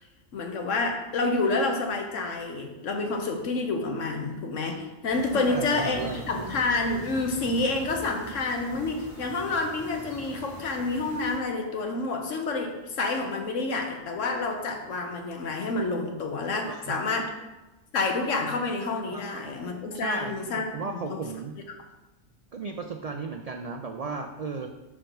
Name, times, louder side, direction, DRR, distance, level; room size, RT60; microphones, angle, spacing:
voice 1, 0.3-17.3 17.9-20.6 21.1-21.2, left 3 dB, 85° left, 3 dB, 1.3 m, -28 dB
sound 1, 5.1-11.4, equal, 25° right, 1.8 m, -43 dB
voice 2, 5.3-6.5 16.7-17.0 19.1-19.5 19.9-21.6 22.5-24.7, right 4 dB, 75° right, 4 dB, 0.3 m, -35 dB
6.4 x 5.0 x 4.5 m, 1.1 s
omnidirectional pair, 1.3 m